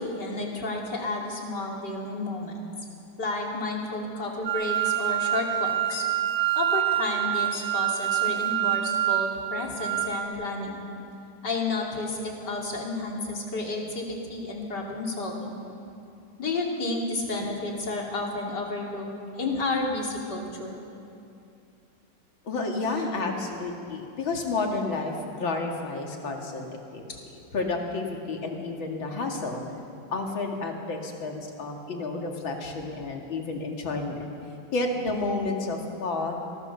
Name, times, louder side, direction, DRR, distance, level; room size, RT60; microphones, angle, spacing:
voice 1, 0.0-2.7 3.2-6.1 6.6-10.8 11.4-15.6 16.4-19.1 19.3-20.8 27.1-27.2, left 2 dB, 60° left, -1 dB, 3.5 m, -31 dB
sound 1, 4.5-10.3, right 12 dB, 85° right, 2.0 m, -26 dB
voice 2, 22.4-27.0 27.5-29.6 30.1-34.2 34.7-36.3, left 3 dB, 85° left, 1 dB, 3.0 m, -30 dB
23.5 x 17.5 x 7.0 m, 2.6 s
omnidirectional pair, 2.1 m